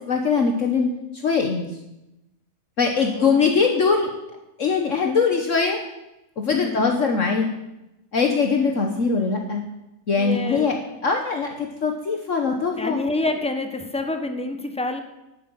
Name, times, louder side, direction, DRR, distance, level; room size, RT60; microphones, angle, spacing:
voice 1, 0.1-1.7 2.8-4.1 4.6-5.8 6.4-7.5 8.1-9.6 10.1-10.8 11.0-13.0, left 5 dB, 55° left, 3 dB, 1.5 m, -22 dB
voice 2, 3.0-3.5 6.4-6.8 10.2-10.8 12.8-15.0, left 2 dB, 5° left, 6 dB, 1.1 m, -28 dB
11.0 x 10.0 x 7.9 m, 0.94 s
omnidirectional pair, 1.6 m